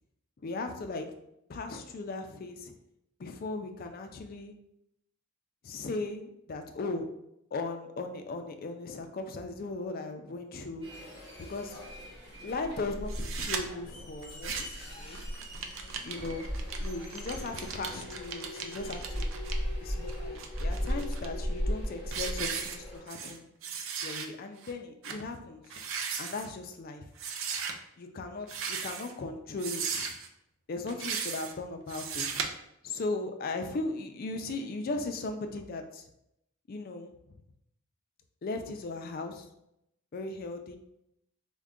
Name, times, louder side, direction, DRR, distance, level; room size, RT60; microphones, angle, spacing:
voice 1, 0.4-1.1 1.5-2.7 3.2-4.5 5.6-7.1 7.5-10.9 11.4-11.8 12.4-15.2 16.0-16.5 16.8-19.3 19.8-23.4 24.0-25.6 26.2-27.0 28.0-30.1 30.7-32.4 32.8-36.0 36.7-37.4 38.4-39.5 40.1-40.8, left 3 dB, 45° left, 5 dB, 0.4 m, -37 dB
sound 1, 10.8-23.0, equal, 20° right, 1.4 m, -37 dB
sound 2, 13.1-13.6 14.2-14.8 15.1-19.5 20.1-21.3 21.7-21.9 22.1-23.4 23.6-24.3 24.6-24.7 25.0-25.2 25.6-26.5 27.2-27.7 28.4-29.1 29.6-30.3 30.9-31.5 31.9-32.5, right 6 dB, 60° right, 0.4 m, -36 dB
3.6 x 2.2 x 3.5 m, 0.80 s
head